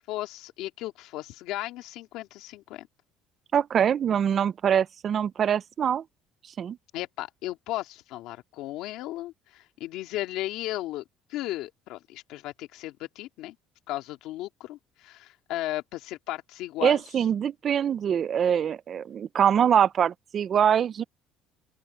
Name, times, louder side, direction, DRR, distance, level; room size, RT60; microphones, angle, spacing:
voice 1, 0.1-2.9 6.9-11.0 11.3-13.6 13.9-17.0, left 16 dB, 65° left, 2.3 m, -35 dB
voice 2, 3.5-6.0 6.6-6.8 16.8-21.0, right 8 dB, 30° right, 0.3 m, -24 dB
open air
cardioid pair, 175°, 0 cm